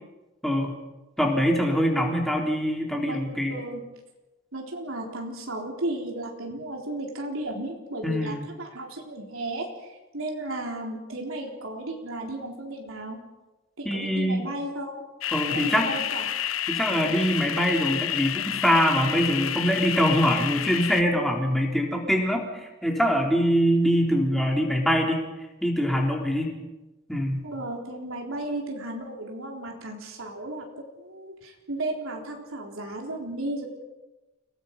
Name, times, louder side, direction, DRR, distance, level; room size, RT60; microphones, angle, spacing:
voice 1, 0.4-0.8 1.2-3.6 8.0-8.4 13.9-14.5 15.3-15.9 16.7-25.2 25.6-26.5 27.1-27.4, equal, ahead, 0 dB, 3.6 m, -24 dB
voice 2, 3.5-3.8 4.5-13.2 13.8-15.0 15.5-16.2 27.4-33.7, right 1 dB, 85° right, 0 dB, 3.9 m, -34 dB
sound 1, 15.2-21.0, left 11 dB, 85° left, 0.8 m, -29 dB
29.5 x 19.0 x 5.4 m, 1.1 s
head